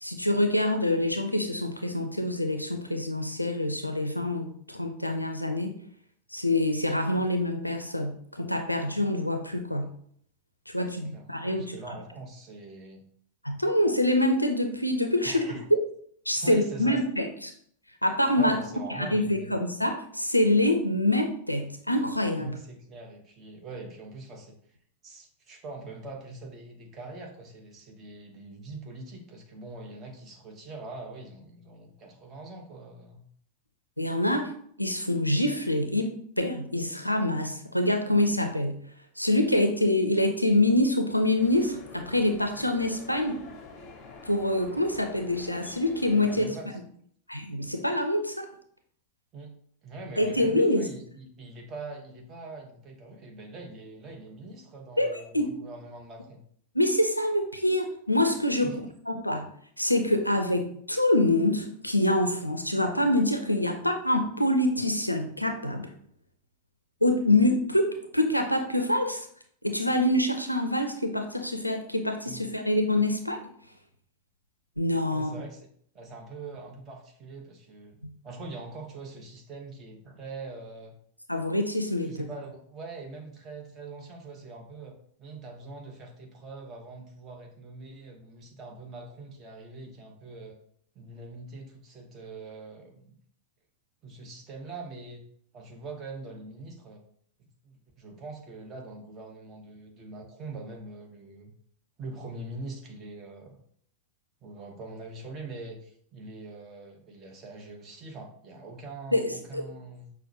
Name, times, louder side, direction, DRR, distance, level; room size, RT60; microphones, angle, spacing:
voice 1, 0.0-5.7 6.3-9.9 10.7-11.8 13.4-15.5 15.7-15.8 16.3-17.5 18.0-18.6 18.9-22.6 34.0-34.5 34.8-36.1 36.4-38.8 39.2-43.4 44.2-46.5 47.3-48.5 50.2-50.9 55.0-55.5 56.7-58.8 59.1-59.5 59.8-65.9 67.0-69.3 69.6-73.4 74.8-75.4 78.0-78.1 81.3-82.3 109.1-109.6, left 1 dB, 90° left, 5 dB, 0.4 m, -26 dB
voice 2, 10.8-13.1 15.2-15.6 16.3-17.0 18.4-19.5 22.4-24.6 25.0-33.3 46.2-46.8 49.3-56.4 58.6-58.9 72.3-72.4 75.1-75.7 75.9-78.0 78.2-80.9 82.0-90.6 90.9-93.2 94.0-95.2 95.5-97.0 97.6-101.5 102.0-103.6 104.4-110.1, right 3 dB, 30° right, 1 dB, 0.9 m, -43 dB
sound 1, 41.4-46.4, left 3 dB, 30° left, 0.6 m, -47 dB
5.8 x 2.1 x 2.7 m, 0.63 s
figure-of-eight pair, 90°, 0 cm